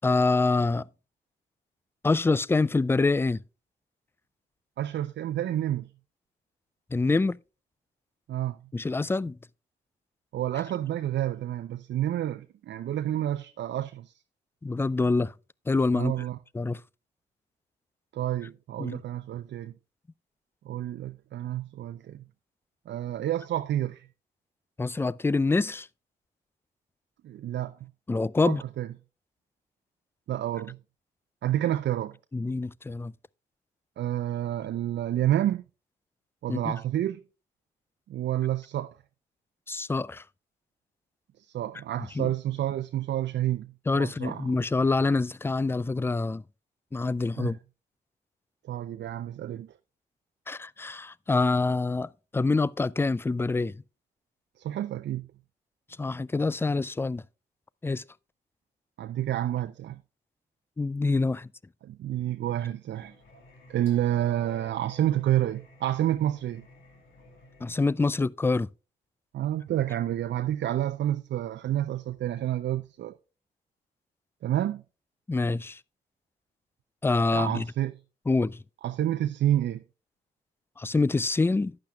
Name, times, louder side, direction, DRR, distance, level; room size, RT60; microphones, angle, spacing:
voice 1, 0.0-0.9 2.0-3.4 6.9-7.4 8.7-9.4 14.6-15.3 15.7-16.1 16.5-16.8 18.8-19.0 24.8-25.9 28.1-28.6 32.3-33.1 36.5-36.6 39.7-40.2 42.2-42.3 43.9-46.4 46.9-47.6 50.5-53.8 56.0-57.2 57.8-58.0 60.8-61.5 67.6-68.7 75.3-75.8 77.0-77.7 78.3-78.6 80.8-81.8, left 3 dB, 10° left, 0.3 m, -26 dB
voice 2, 4.8-5.9 8.3-8.6 10.3-14.1 15.9-16.4 18.1-19.7 20.6-22.2 22.9-24.1 27.2-27.9 28.5-28.9 30.3-30.8 31.4-32.2 34.0-35.6 36.4-37.2 38.1-39.0 41.4-44.5 47.4-47.6 48.6-49.7 54.6-55.3 59.0-60.0 61.8-63.2 63.7-66.7 69.3-73.2 74.4-74.8 77.3-78.0 78.8-79.8, right 12 dB, 65° right, 0.5 m, -29 dB
Singing, 62.9-67.9, left 2 dB, 75° left, 2.5 m, -53 dB
11.5 x 8.9 x 2.3 m
hypercardioid pair, 40°, 20 cm